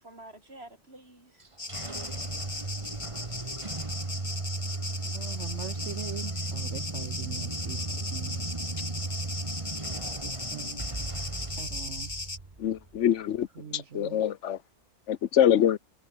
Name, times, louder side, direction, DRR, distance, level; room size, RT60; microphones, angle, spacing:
voice 1, 0.0-1.5 9.9-10.5, right 1 dB, 60° right, 6.1 m, -50 dB
sound 1, 1.4-13.0, right 3 dB, 25° right, 1.6 m, -36 dB
sound 2, 1.6-12.4, left 2 dB, 40° left, 2.7 m, -38 dB
voice 2, 5.0-8.5 10.5-10.9 11.4-12.1 13.6-14.2, right 7 dB, 75° right, 1.4 m, -41 dB
voice 3, 12.6-13.5 13.7-14.6 15.1-15.8, left 10 dB, 80° left, 1.1 m, -24 dB
omnidirectional pair, 1.2 m